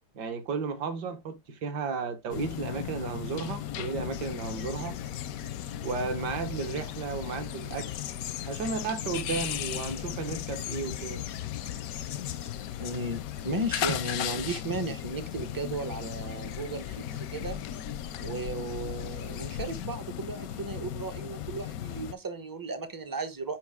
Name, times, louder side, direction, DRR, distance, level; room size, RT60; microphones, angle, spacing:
voice 1, 0.2-5.0 5.8-7.9 8.5-11.2, right 4 dB, 65° right, 1.8 m, -34 dB
sound 1, 2.3-22.1, left 11 dB, 70° left, 0.9 m, -37 dB
sound 2, 4.1-19.9, left 10 dB, 90° left, 1.4 m, -42 dB
voice 2, 12.8-17.6 18.2-23.6, right 2 dB, 30° right, 0.4 m, -35 dB
7.1 x 5.1 x 3.4 m
omnidirectional pair, 2.0 m